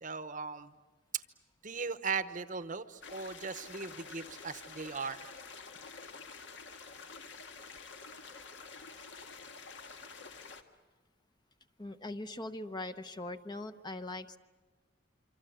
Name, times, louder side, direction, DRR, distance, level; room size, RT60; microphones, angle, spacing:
voice 1, 0.0-0.7 1.1-1.2 1.6-5.3, right 5 dB, 40° right, 12 dB, 1.0 m, -38 dB
sound 1, 3.0-10.6, left 4 dB, 65° left, 1.7 m, -49 dB
voice 2, 11.8-14.4, left 2 dB, 20° left, 9 dB, 0.8 m, -41 dB
27.0 x 25.0 x 8.0 m, 1.3 s
head